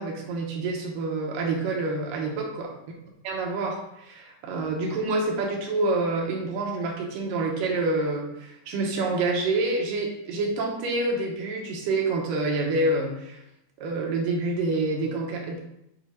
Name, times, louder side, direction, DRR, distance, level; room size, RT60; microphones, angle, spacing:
voice 1, 0.0-2.7 3.2-13.4 13.8-15.6, right 2 dB, 75° right, 0 dB, 2.5 m, -27 dB
8.0 x 2.8 x 4.4 m, 0.82 s
omnidirectional pair, 4.0 m